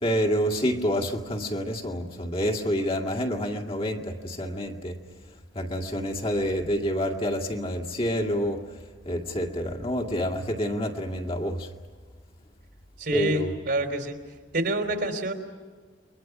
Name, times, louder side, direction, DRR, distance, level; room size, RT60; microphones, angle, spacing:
voice 1, 0.0-5.0 5.5-8.6 9.1-11.7 13.1-13.5, equal, 30° left, 2 dB, 2.1 m, -28 dB
voice 2, 13.0-14.2 14.5-15.3, right 1 dB, 60° right, 6 dB, 3.5 m, -27 dB
29.5 x 23.5 x 6.0 m, 1.5 s
head